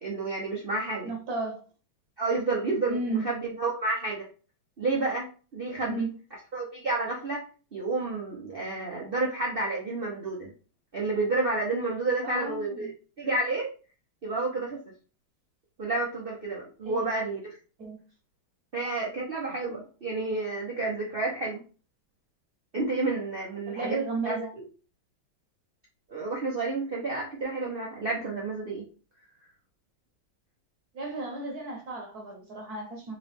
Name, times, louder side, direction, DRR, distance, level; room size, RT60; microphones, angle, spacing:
voice 1, 0.0-1.1 2.2-4.3 4.8-6.1 6.5-7.4 7.7-10.5 10.9-12.9 13.2-13.7 14.2-14.8 15.8-17.4 18.7-21.6 22.7-24.0 24.2-24.6 26.1-28.8, right 3 dB, 80° right, -4 dB, 0.5 m, -30 dB
voice 2, 1.0-1.6 2.9-3.2 5.9-6.2 12.2-12.9 16.9-17.1 17.8-18.0 23.7-24.5 30.9-33.1, right 3 dB, 55° right, 2 dB, 1.2 m, -33 dB
3.6 x 3.0 x 3.4 m, 0.36 s
omnidirectional pair, 2.3 m